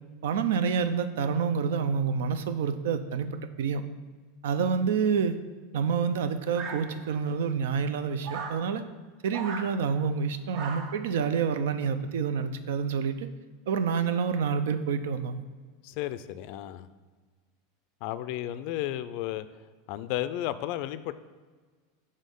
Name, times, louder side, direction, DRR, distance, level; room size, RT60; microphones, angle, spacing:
voice 1, 0.2-3.8 4.4-5.4 5.7-8.8 9.2-13.3 13.7-15.4, right 6 dB, 85° right, 10 dB, 0.5 m, -28 dB
sound 1, 6.5-7.3 8.2-8.6 9.3-9.7 10.5-11.0, right 5 dB, 45° right, 0.7 m, -38 dB
voice 2, 15.8-16.9 18.0-19.5 19.9-21.1, left 13 dB, 55° left, 13 dB, 0.3 m, -33 dB
6.4 x 3.7 x 5.2 m, 1.4 s
supercardioid pair, 140°, 0 cm